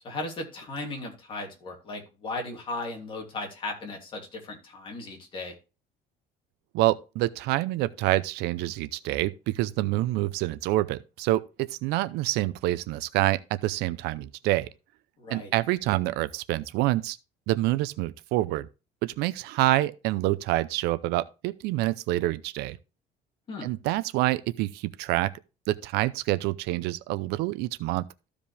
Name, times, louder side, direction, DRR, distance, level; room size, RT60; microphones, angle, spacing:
voice 1, 0.0-5.5 15.2-15.5 23.5-23.7, left 2 dB, 30° left, 2.9 m, -36 dB
voice 2, 6.7-14.7 15.3-17.2 17.5-18.7 19.0-22.8 23.6-25.3 25.7-28.3, right 17 dB, 80° right, 0.6 m, -27 dB
14.0 x 5.1 x 3.4 m
cardioid pair, 175°, 17 cm